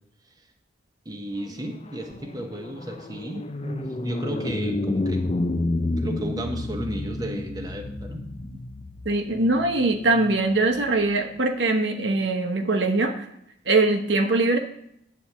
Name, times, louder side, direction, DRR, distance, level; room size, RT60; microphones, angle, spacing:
voice 1, 1.0-5.2 5.9-8.2, right 1 dB, 20° right, 3 dB, 1.0 m, -33 dB
sound 1, 1.5-11.0, left 2 dB, 35° left, 0.5 m, -30 dB
voice 2, 9.0-13.2 13.7-14.6, right 2 dB, 75° right, 5 dB, 1.0 m, -22 dB
9.5 x 4.2 x 7.3 m, 0.75 s
head